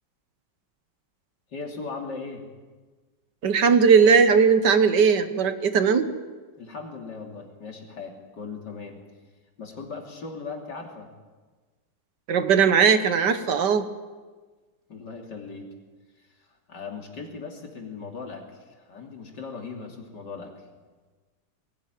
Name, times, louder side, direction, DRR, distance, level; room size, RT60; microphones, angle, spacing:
voice 1, 1.5-2.4 6.6-9.0 9.6-11.1 14.9-15.7 16.2-16.3 16.7-20.5, left 4 dB, 70° left, 1 dB, 3.5 m, -38 dB
voice 2, 3.4-6.1 12.3-13.9, right 6 dB, 70° right, 10 dB, 1.8 m, -18 dB
21.5 x 16.5 x 9.3 m, 1.4 s
omnidirectional pair, 1.9 m